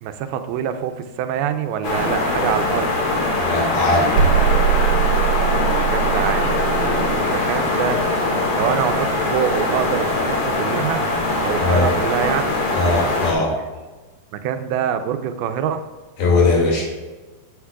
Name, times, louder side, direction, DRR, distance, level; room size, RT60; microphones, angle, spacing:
voice 1, 0.0-2.9 5.6-6.8 7.1-8.1 8.5-11.0 11.4-12.4 14.4-15.9, right 9 dB, 90° right, 8 dB, 2.5 m, -25 dB
sound 1, 1.8-13.3, left 2 dB, 45° left, 2.3 m, -21 dB
voice 2, 3.4-4.1 11.6-11.9 12.7-13.6 16.2-16.8, left 3 dB, 75° left, -2 dB, 4.2 m, -19 dB
sound 2, 4.1-7.2, right 9 dB, 75° right, 2.1 m, -21 dB
12.5 x 8.0 x 2.4 m, 1.2 s
omnidirectional pair, 4.4 m